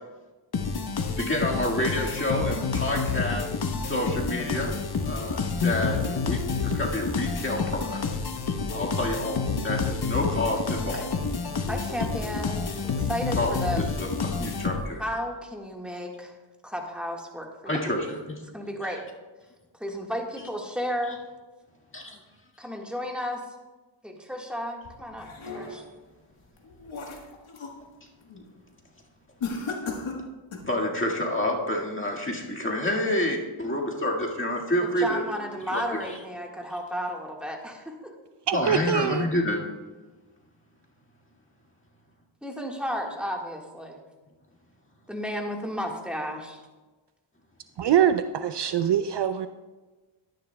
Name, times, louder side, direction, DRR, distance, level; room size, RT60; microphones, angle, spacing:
sound 1, 0.5-15.1, left 5 dB, 50° left, 0.9 m, -29 dB
voice 1, 1.2-3.5 3.9-4.7 5.0-8.0 8.7-11.1 13.4-15.0 17.7-18.4 21.9-22.2 30.6-35.2 35.7-35.8 38.5-39.6, left 1 dB, 25° left, -2 dB, 1.8 m, -28 dB
voice 2, 11.7-13.8 15.0-16.4 16.6-17.9 18.5-19.1 19.7-21.2 22.6-23.4 24.0-25.3 25.5-25.8 34.8-38.2 42.4-44.0 45.1-46.6, equal, ahead, 1 dB, 1.6 m, -33 dB
sound 2, 24.8-26.0 26.5-27.8 28.2-28.5 29.4-30.8, left 4 dB, 75° left, 1.5 m, -36 dB
voice 3, 38.5-39.3 47.8-49.5, right 9 dB, 55° right, 10 dB, 0.5 m, -23 dB
11.5 x 10.0 x 2.2 m, 1.2 s
cardioid pair, 70°, 50 cm